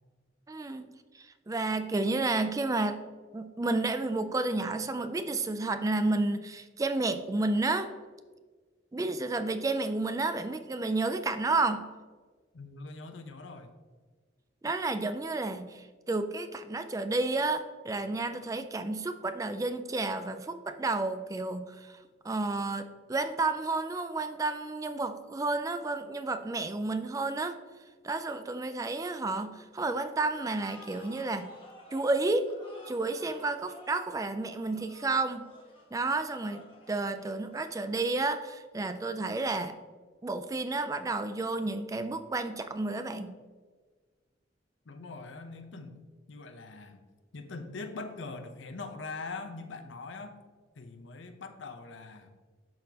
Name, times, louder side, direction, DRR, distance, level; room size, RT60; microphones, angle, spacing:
voice 1, 0.5-0.9 1.2-3.0 3.3-7.9 8.9-11.9 14.6-21.9 22.2-27.6 28.0-31.5 31.9-32.5 32.9-35.4 35.9-39.8 40.2-43.4, right 3 dB, 20° right, 9 dB, 0.3 m, -31 dB
voice 2, 12.5-13.7 44.9-45.9 46.3-47.0 47.3-50.4 50.8-52.3, left 3 dB, 80° left, 8 dB, 0.7 m, -42 dB
sound 1, 30.5-38.4, left 1 dB, 30° left, 1.6 m, -53 dB
11.5 x 4.0 x 2.9 m, 1.4 s
head